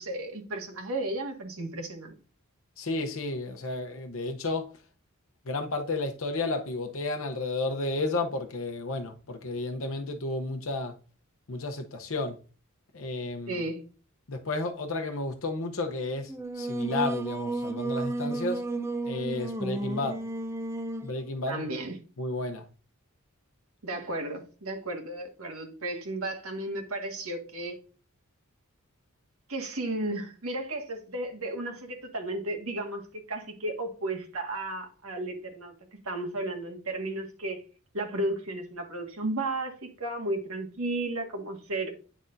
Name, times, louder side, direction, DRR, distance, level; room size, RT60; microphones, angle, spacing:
voice 1, 0.0-2.1 13.5-13.8 21.5-21.9 23.8-27.8 29.5-33.0 33.3-35.7 36.0-37.6 37.9-41.9, right 2 dB, 75° right, 1.7 m, -34 dB
voice 2, 2.8-4.7 5.5-11.0 11.5-12.4 12.9-13.6 14.3-18.7 19.0-20.2 21.0-21.6 22.2-22.7, left 2 dB, 65° left, 0.8 m, -32 dB
Singing, 16.3-21.2, right 2 dB, 10° right, 0.4 m, -32 dB
9.3 x 6.2 x 2.6 m
head